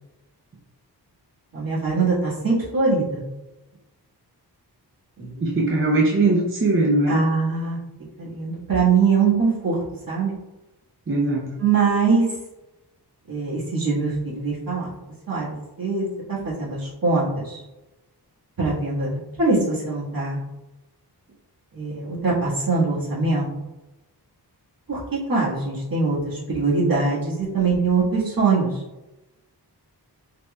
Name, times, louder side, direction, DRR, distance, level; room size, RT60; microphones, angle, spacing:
voice 1, 1.5-3.2 5.2-5.5 7.1-7.8 8.2-9.8 10.1-10.3 11.6-12.2 13.3-14.9 15.3-17.6 18.6-20.4 21.7-23.4 24.9-28.8, right 4 dB, 55° right, -7 dB, 1.5 m, -22 dB
voice 2, 5.4-7.2 11.1-11.6, right 2 dB, 30° right, -2 dB, 0.5 m, -20 dB
4.2 x 3.0 x 2.2 m, 1.0 s
wide cardioid pair, 125°, 40 cm